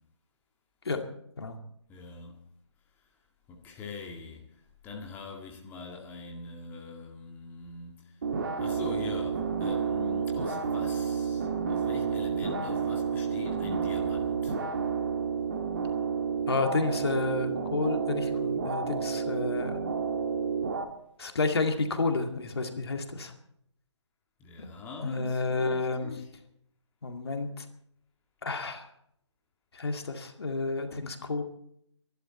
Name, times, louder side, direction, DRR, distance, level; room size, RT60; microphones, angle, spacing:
voice 1, 1.9-2.4 3.5-4.5 4.8-8.1 8.6-14.6 24.4-26.3, left 4 dB, 10° left, 1.9 m, -42 dB
sound 1, 8.2-20.8, right 6 dB, 45° right, 2.4 m, -30 dB
voice 2, 16.5-19.8 21.2-23.3 25.0-26.1 27.0-27.7 28.4-28.9 29.7-31.4, left 3 dB, 55° left, 2.2 m, -30 dB
24.0 x 12.0 x 4.2 m
figure-of-eight pair, 145°, 15 cm